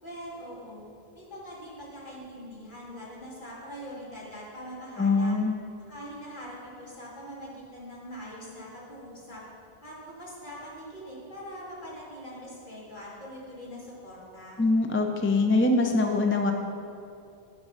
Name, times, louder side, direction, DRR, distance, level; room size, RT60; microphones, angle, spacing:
voice 1, 0.0-0.9 1.1-5.4 5.9-9.4 9.8-14.6, equal, 55° left, -7 dB, 2.5 m, -42 dB
voice 2, 5.0-5.6 14.6-16.5, left 3 dB, 20° left, 4 dB, 0.4 m, -23 dB
10.0 x 6.1 x 5.5 m, 2.6 s
omnidirectional pair, 1.0 m